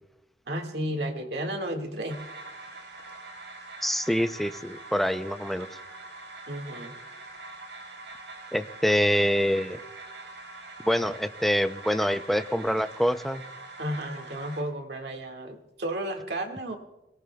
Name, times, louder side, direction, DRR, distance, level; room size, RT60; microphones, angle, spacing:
voice 1, 0.5-2.2 6.5-6.9 13.8-16.8, right 1 dB, 65° right, 3 dB, 1.8 m, -33 dB
sound 1, 2.1-14.6, right 2 dB, 85° right, 5.0 m, -44 dB
voice 2, 3.8-5.7 8.5-9.8 10.8-13.4, equal, ahead, 10 dB, 0.5 m, -25 dB
23.0 x 18.5 x 2.3 m, 1.0 s
head